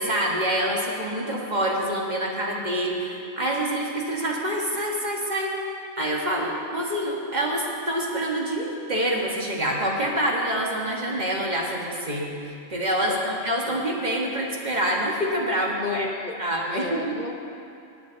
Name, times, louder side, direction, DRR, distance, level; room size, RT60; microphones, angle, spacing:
voice 1, 0.0-5.5 6.0-16.1 16.4-17.3, right 1 dB, 35° right, -2 dB, 1.9 m, -26 dB
voice 2, 13.1-13.8 15.8-16.4 16.7-17.3, left 3 dB, 45° left, 3 dB, 0.9 m, -33 dB
19.5 x 9.0 x 4.1 m, 2.7 s
omnidirectional pair, 1.3 m